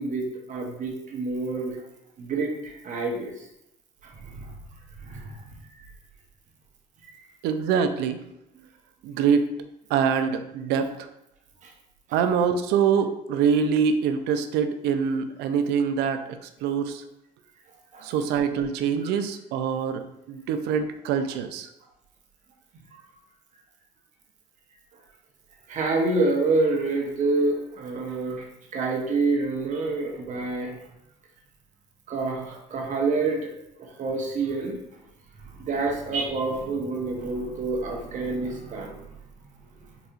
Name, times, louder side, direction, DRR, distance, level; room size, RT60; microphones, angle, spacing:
voice 1, 0.0-1.8 2.2-3.5 4.0-4.5 5.0-5.5 5.8-5.9 7.0-7.1 8.5-8.6 11.6-11.7 17.9-18.1 19.0-19.1 22.9-23.0 25.7-28.5 28.7-30.8 32.1-33.5 33.8-34.8 35.4-39.1, right 3 dB, 50° right, 0 dB, 0.9 m, -28 dB
voice 2, 7.4-8.2 9.0-9.5 9.9-11.1 12.1-17.0 18.0-21.7, right 7 dB, 90° right, 8 dB, 0.4 m, -24 dB
4.0 x 2.8 x 2.4 m, 0.85 s
cardioid pair, 110°, 17 cm